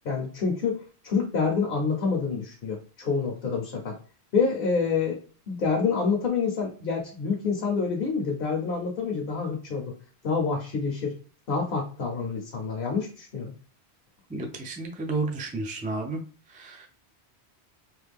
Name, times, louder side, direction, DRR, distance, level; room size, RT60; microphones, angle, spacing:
voice 1, 0.0-4.0 4.3-5.2 5.5-9.9 10.2-11.2 11.5-13.5, left 5 dB, 60° left, 1 dB, 0.9 m, -27 dB
voice 2, 14.3-16.2 16.5-16.9, right 3 dB, 10° right, 1 dB, 0.4 m, -32 dB
3.1 x 2.2 x 3.4 m, 0.39 s
omnidirectional pair, 1.1 m